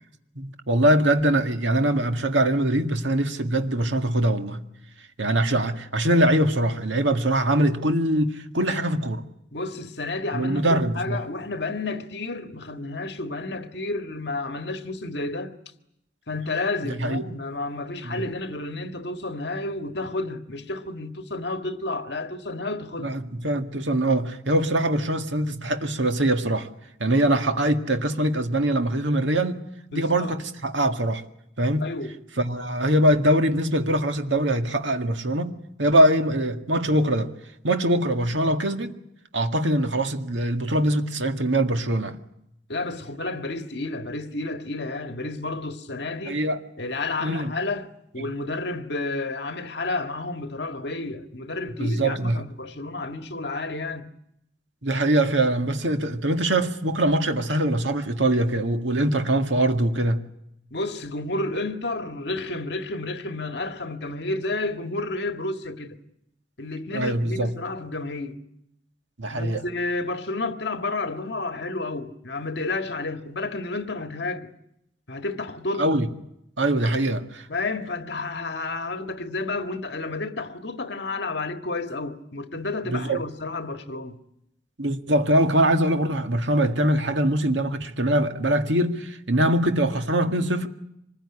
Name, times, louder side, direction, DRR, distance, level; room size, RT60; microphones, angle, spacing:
voice 1, 0.4-4.6 5.2-9.2 10.3-11.2 16.8-17.2 18.0-18.2 23.0-26.7 27.0-29.6 29.9-31.2 31.6-31.9 32.4-37.3 37.6-38.9 39.3-42.2 46.3-46.6 47.2-47.5 51.8-52.4 54.8-60.2 66.9-67.5 69.2-69.6 75.8-76.1 76.6-77.5 82.9-83.2 84.8-90.7, right 1 dB, 80° right, 1.9 m, -23 dB
voice 2, 9.5-15.5 16.3-23.1 29.9-30.3 31.8-32.2 42.7-46.4 46.8-54.1 60.7-66.0 66.6-68.4 69.3-74.5 75.1-75.9 77.5-84.2, left 2 dB, 60° left, 1.7 m, -31 dB
25.5 x 20.5 x 9.9 m
head